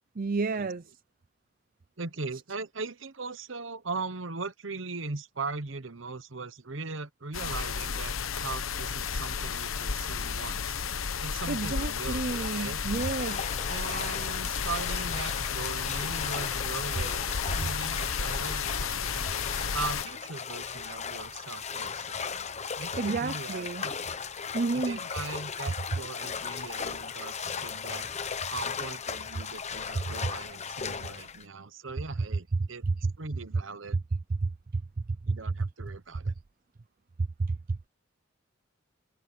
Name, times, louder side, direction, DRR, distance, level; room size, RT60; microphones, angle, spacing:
voice 1, 0.2-0.8 11.5-13.4 23.0-23.9 24.5-25.0 33.0-33.1 34.4-34.8 35.3-35.7 36.3-36.4 37.4-37.6, right 3 dB, 45° right, 0.5 m, -30 dB
voice 2, 2.0-10.8 11.2-12.8 13.7-19.3 19.7-22.3 22.8-24.0 24.7-32.8 33.2-34.0 35.3-36.3, right 3 dB, 65° right, 1.1 m, -39 dB
sound 1, 7.3-20.0, left 6 dB, 90° left, 1.0 m, -32 dB
sound 2, 13.0-31.4, left 6 dB, 35° left, 1.0 m, -37 dB
head